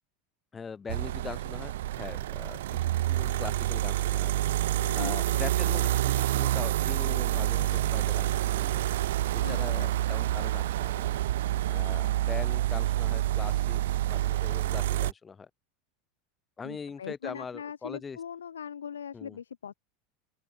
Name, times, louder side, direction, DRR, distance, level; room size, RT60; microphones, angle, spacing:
voice 1, 0.5-4.3 4.9-8.9 9.3-11.2 11.7-13.8 14.1-15.5 16.6-18.2 19.1-19.4, left 5 dB, 25° left, 2.7 m, -41 dB
sound 1, 0.9-15.1, right 14 dB, 75° right, 0.4 m, -28 dB
voice 2, 4.8-5.2 9.4-9.9 16.6-19.7, left 8 dB, 90° left, 1.1 m, -40 dB
open air
hypercardioid pair, 90°, 0 cm